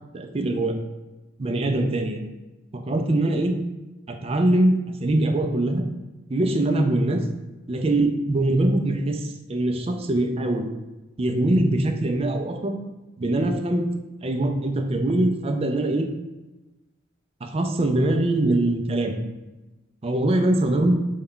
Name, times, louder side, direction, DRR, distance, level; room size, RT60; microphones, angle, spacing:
voice 1, 0.1-0.7 1.4-2.3 2.7-3.5 4.1-5.8 6.3-7.2 7.7-10.7 11.2-12.8 13.2-13.8 14.2-16.1 17.4-19.2 20.0-21.0, right 1 dB, 30° right, 4 dB, 0.4 m, -22 dB
5.3 x 2.3 x 3.6 m, 1.1 s
head